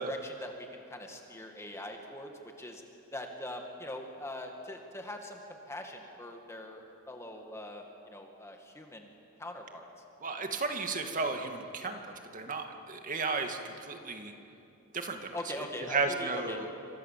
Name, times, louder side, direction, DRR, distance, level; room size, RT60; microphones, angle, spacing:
voice 1, 0.0-2.3 2.6-2.8 3.1-5.4 5.7-9.1 9.4-9.9 15.3-16.6, left 1 dB, 10° left, 3 dB, 2.0 m, -42 dB
voice 2, 10.2-12.0 12.3-14.3 14.9-15.4 15.9-16.7, right 4 dB, 35° right, 5 dB, 2.1 m, -33 dB
28.5 x 25.5 x 7.5 m, 2.8 s
head